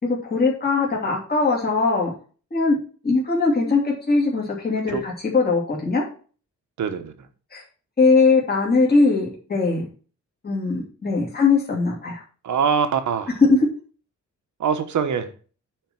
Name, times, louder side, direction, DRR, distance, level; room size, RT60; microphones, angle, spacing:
voice 1, 0.0-2.1 2.5-2.8 3.0-6.0 7.5-7.6 8.0-9.8 10.4-12.2 13.4-13.6, left 4 dB, 30° left, -3 dB, 2.8 m, -20 dB
voice 2, 6.8-7.1 12.4-13.3 14.6-15.3, right 6 dB, 75° right, 9 dB, 1.3 m, -23 dB
9.3 x 4.6 x 6.1 m, 0.39 s
wide cardioid pair, 170°, 29 cm